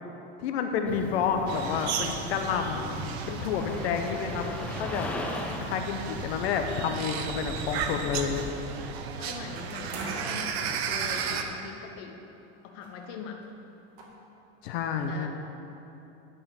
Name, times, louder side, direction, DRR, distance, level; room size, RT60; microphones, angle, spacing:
voice 1, 0.4-4.5 4.8-5.1 5.6-8.4 14.6-15.3, left 6 dB, 80° left, 5 dB, 1.0 m, -30 dB
sound 1, 0.9-8.5, left 1 dB, 5° left, 0.4 m, -38 dB
sound 2, 1.5-11.4, right 7 dB, 75° right, 1.0 m, -35 dB
voice 2, 9.2-12.2 12.6-13.5 15.1-15.3, left 5 dB, 45° left, 3 dB, 0.9 m, -41 dB
sound 3, 9.3-10.3 11.3-11.4 11.6-11.7 12.8-13.1 13.4-13.5 14.0-14.1, right 3 dB, 50° right, 1.9 m, -43 dB
11.0 x 5.6 x 7.1 m, 2.9 s
supercardioid pair, 160°, 32 cm